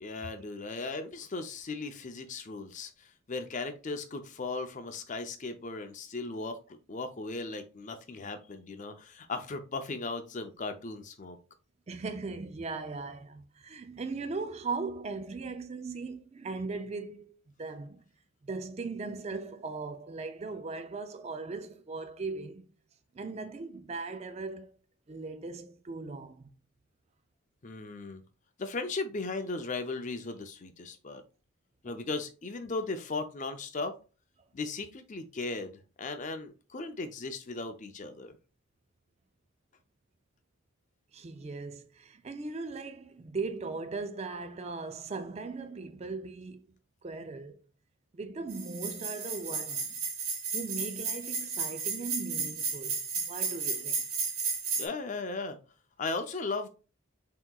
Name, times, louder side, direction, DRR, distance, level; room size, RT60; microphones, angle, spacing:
voice 1, 0.0-11.4 27.6-28.2 28.6-31.2 31.8-34.0 34.5-38.4 54.8-55.6 56.0-56.7, left 3 dB, 35° left, 0.5 m, -37 dB
voice 2, 11.9-18.0 18.4-22.7 23.1-24.8 25.1-26.5 31.9-32.0 41.1-46.7 47.0-47.6 48.1-50.0 50.5-54.1, right 3 dB, 30° right, 0.3 m, -38 dB
sound 1, 48.5-54.9, right 5 dB, 85° right, 1.4 m, -33 dB
5.8 x 2.9 x 2.3 m
head